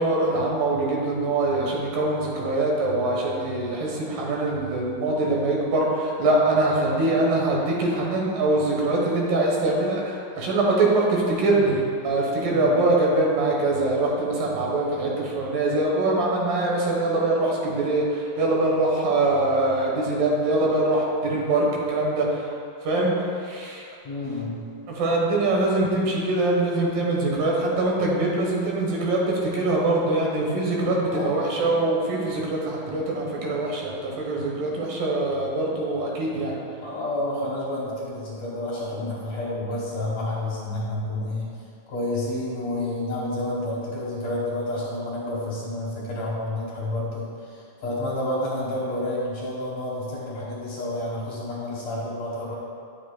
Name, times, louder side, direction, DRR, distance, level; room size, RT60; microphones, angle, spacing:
voice 1, 0.0-22.4 22.8-23.1 23.4-23.8 24.9-36.5, right 2 dB, 75° right, -3 dB, 2.9 m, -23 dB
voice 2, 24.0-24.6 31.1-31.7 36.8-41.5 41.9-52.6, left 1 dB, 60° left, -6 dB, 2.2 m, -30 dB
10.0 x 7.6 x 2.2 m, 2.5 s
omnidirectional pair, 4.0 m